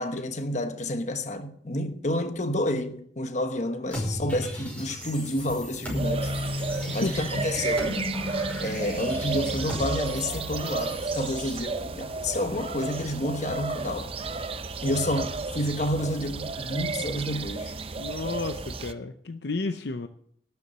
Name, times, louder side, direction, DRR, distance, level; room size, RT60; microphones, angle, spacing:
voice 1, 0.0-6.5 6.9-7.9 8.6-14.1 14.8-17.7, left 1 dB, 40° left, 1.1 m, -30 dB
sound 1, 3.9-11.6, left 1 dB, 10° left, 5.5 m, -34 dB
sound 2, 5.9-18.9, right 3 dB, 35° right, 0.6 m, -33 dB
voice 2, 6.9-7.3 18.0-20.1, left 3 dB, 65° left, 0.6 m, -32 dB
12.0 x 7.0 x 8.1 m
head